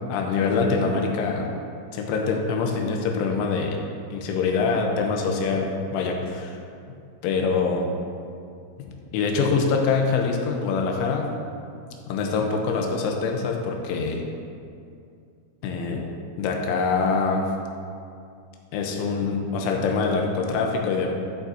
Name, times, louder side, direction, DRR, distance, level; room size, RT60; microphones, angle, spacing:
voice 1, 0.1-1.5 1.9-3.8 4.1-6.6 7.2-7.9 9.1-11.3 12.1-14.2 15.6-16.1 16.4-17.5 18.7-21.1, left 4 dB, 85° left, 1 dB, 3.3 m, -24 dB
13.5 x 6.9 x 2.7 m, 2.4 s
omnidirectional pair, 5.6 m